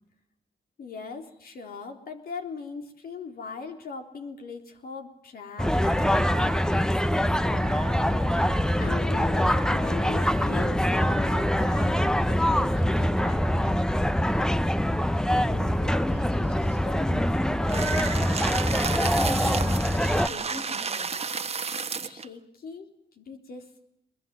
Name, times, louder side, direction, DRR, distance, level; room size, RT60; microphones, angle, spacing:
voice 1, 0.8-8.2 8.8-13.7 22.0-22.9 23.2-23.7, left 5 dB, 65° left, 4 dB, 3.7 m, -40 dB
sound 1, 5.6-20.3, equal, 5° left, 0.8 m, -24 dB
Wind instrument woodwind instrument, 5.8-12.2, right 9 dB, 65° right, 1.2 m, -44 dB
voice 2, 15.2-21.2, left 1 dB, 40° left, 3 dB, 4.6 m, -39 dB
sound 2, 17.7-22.3, right 5 dB, 40° right, 1.3 m, -32 dB
22.0 x 22.0 x 7.7 m, 0.79 s
cardioid pair, 75°, 16 cm